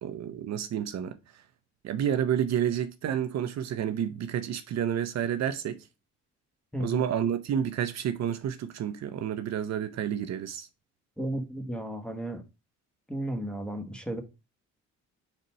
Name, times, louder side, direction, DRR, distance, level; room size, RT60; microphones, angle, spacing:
voice 1, 0.0-1.4 1.8-5.9 6.8-10.7, right 9 dB, 60° right, 0.6 m, -30 dB
voice 2, 6.7-7.0 11.2-12.4 13.1-14.2, right 1 dB, 5° left, 1.2 m, -33 dB
4.4 x 4.0 x 5.5 m
cardioid pair, 90°, 30 cm